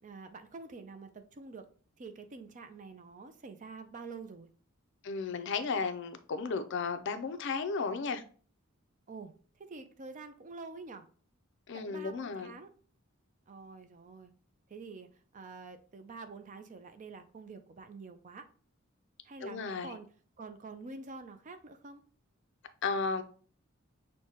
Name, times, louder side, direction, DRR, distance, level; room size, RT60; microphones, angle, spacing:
voice 1, 0.0-1.7 2.0-4.5 9.1-11.1 11.7-12.7 13.5-14.3 14.7-18.5 19.2-20.1 20.4-22.0, right 4 dB, 35° right, 0.4 m, -47 dB
voice 2, 5.0-8.2 11.7-12.5 19.4-19.9 22.8-23.2, left 4 dB, 60° left, 0.4 m, -34 dB
6.3 x 2.2 x 2.8 m
head